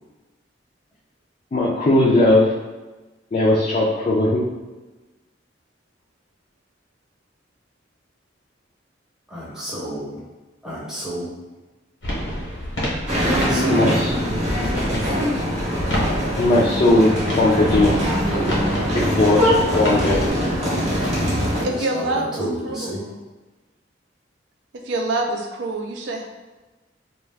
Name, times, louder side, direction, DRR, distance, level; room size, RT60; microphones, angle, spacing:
voice 1, 1.5-2.5 3.3-4.4 13.6-14.1 16.4-17.9 18.9-20.2, left 2 dB, 35° left, -6 dB, 0.4 m, -18 dB
voice 2, 9.3-10.2 10.6-11.4 13.1-14.0 21.7-23.1, equal, 5° right, -7 dB, 0.6 m, -31 dB
sound 1, 12.0-20.3, equal, 80° left, 0.9 m, -29 dB
sound 2, 13.1-21.6, equal, 35° right, 0.8 m, -22 dB
voice 3, 21.6-22.4 22.6-23.2 24.7-26.3, right 2 dB, 75° right, 2 dB, 0.4 m, -26 dB
2.3 x 2.2 x 3.3 m, 1.2 s
head